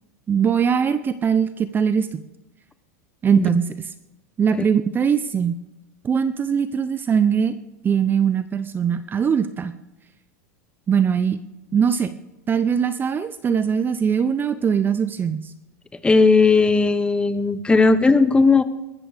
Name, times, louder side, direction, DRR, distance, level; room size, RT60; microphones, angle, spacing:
voice 1, 0.3-2.2 3.2-3.9 4.4-5.6 6.0-7.5 7.8-9.7 10.9-11.4 11.7-12.1 12.5-15.5, right 7 dB, 25° right, 12 dB, 0.6 m, -21 dB
voice 2, 16.0-18.6, left 4 dB, 10° left, 12 dB, 0.9 m, -16 dB
21.5 x 13.0 x 3.5 m, 0.97 s
hypercardioid pair, 110°, 8 cm